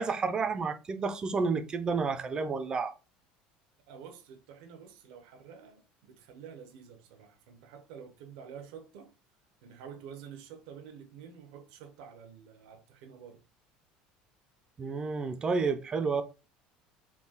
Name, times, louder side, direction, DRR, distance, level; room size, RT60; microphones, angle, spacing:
voice 1, 0.0-2.9 14.8-16.2, right 4 dB, 25° right, 0.5 m, -30 dB
voice 2, 3.9-9.1 9.6-13.4, right 7 dB, 80° right, 0.8 m, -49 dB
3.7 x 2.3 x 4.0 m
cardioid pair, 125°, 3 cm